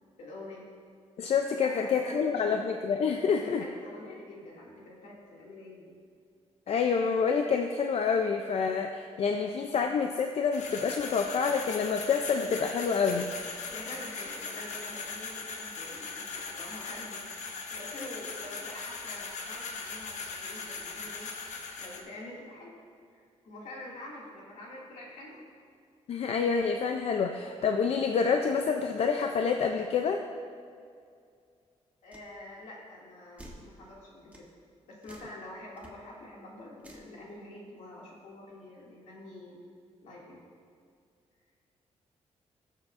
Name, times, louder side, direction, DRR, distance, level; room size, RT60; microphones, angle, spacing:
voice 1, 0.2-0.7 1.6-2.5 3.4-6.0 13.7-17.3 17.7-21.3 21.8-22.7 23.1-25.5 32.0-34.5 34.9-39.6 40.0-40.4, left 1 dB, 90° left, -4 dB, 2.5 m, -46 dB
voice 2, 1.2-3.6 6.7-13.3 26.1-30.2, left 6 dB, 55° left, 4 dB, 0.5 m, -27 dB
sound 1, 10.5-22.0, left 4 dB, 75° left, 1.0 m, -39 dB
sound 2, 32.1-32.3 33.4-33.7 34.3-34.5 35.0-35.3 35.8-35.9 36.8-37.1, right 1 dB, 10° right, 1.1 m, -50 dB
18.5 x 7.3 x 2.6 m, 2.3 s
wide cardioid pair, 155°, 12 cm